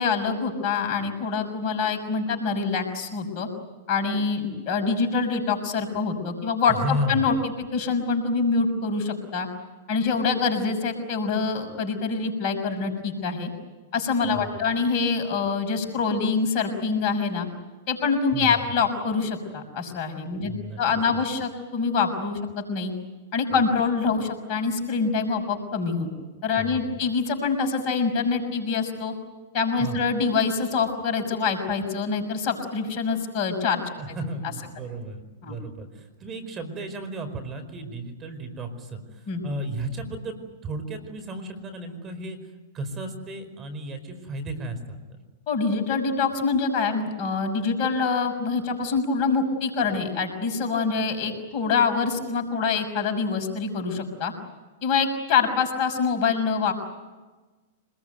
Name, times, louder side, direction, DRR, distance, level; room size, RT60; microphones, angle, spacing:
voice 1, 0.0-3.5 3.9-7.3 7.7-9.5 9.9-13.5 13.9-17.5 17.9-20.5 20.8-22.9 23.3-26.1 26.4-29.1 29.5-33.8 35.5-35.6 39.3-39.4 45.5-54.3 54.8-56.7, left 5 dB, 45° left, 3 dB, 6.2 m, -25 dB
voice 2, 6.7-7.4 14.2-14.6 18.3-18.6 20.4-20.8 21.1-21.2 23.5-23.6 26.6-26.8 29.8-30.1 34.0-40.4 40.6-45.2, right 1 dB, 25° right, 8 dB, 5.0 m, -34 dB
27.0 x 21.0 x 9.5 m, 1.3 s
hypercardioid pair, 110°, 0 cm